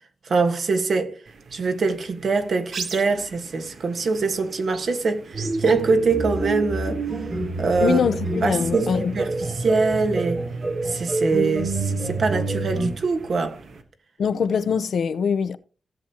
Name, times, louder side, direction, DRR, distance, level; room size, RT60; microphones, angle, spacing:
voice 1, 0.2-1.2 1.5-7.0 7.6-8.0 8.4-10.4 10.8-13.6, right 4 dB, 70° right, 1.4 m, -23 dB
sound 1, 1.3-13.8, right 4 dB, 90° right, 1.3 m, -42 dB
sound 2, 5.3-12.9, right 2 dB, 35° right, 1.8 m, -27 dB
voice 2, 7.8-9.2 14.2-15.6, left 6 dB, 85° left, 0.6 m, -23 dB
16.0 x 7.1 x 2.9 m
cardioid pair, 85°, 0 cm